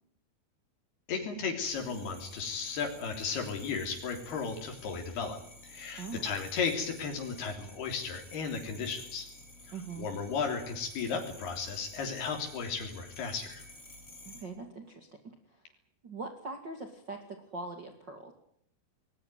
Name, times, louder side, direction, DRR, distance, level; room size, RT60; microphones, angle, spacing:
voice 1, 1.1-9.3 10.0-13.6, left 5 dB, 90° left, 3 dB, 5.5 m, -35 dB
sound 1, 1.6-14.4, left 2 dB, 20° left, 4.2 m, -52 dB
voice 2, 9.7-10.1 14.2-15.6 16.0-18.3, right 3 dB, 30° right, 4 dB, 2.7 m, -42 dB
21.0 x 20.5 x 9.2 m, 0.71 s
omnidirectional pair, 4.4 m